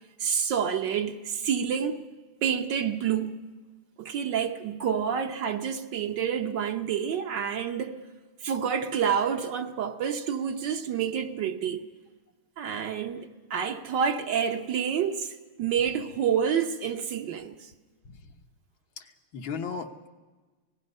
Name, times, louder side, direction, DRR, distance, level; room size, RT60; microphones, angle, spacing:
voice 1, 0.2-2.0 2.4-3.3 4.0-8.0 8.4-11.8 12.6-15.3 15.6-17.6, right 7 dB, 60° right, 1.6 m, -28 dB
voice 2, 19.0-20.1, left 5 dB, 70° left, 1.9 m, -37 dB
27.0 x 19.0 x 5.4 m
omnidirectional pair, 2.3 m